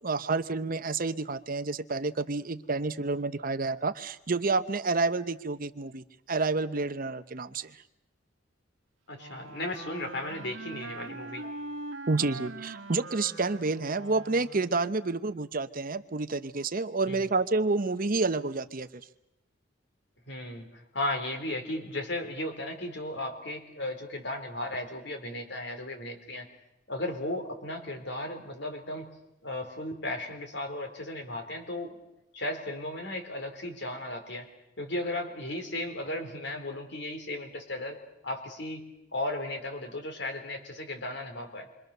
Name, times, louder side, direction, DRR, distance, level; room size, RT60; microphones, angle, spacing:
voice 1, 0.0-7.8 12.1-19.0, right 3 dB, 45° right, 12 dB, 0.8 m, -29 dB
voice 2, 9.1-11.4 17.1-17.2 20.3-26.5 26.9-29.1 29.4-32.0 32.3-34.5 34.8-38.0 38.2-38.8 39.1-41.7, left 1 dB, 60° left, 5 dB, 4.1 m, -35 dB
Wind instrument woodwind instrument, 9.1-14.9, right 2 dB, 70° right, 1.7 m, -42 dB
28.0 x 24.0 x 6.8 m, 0.84 s
head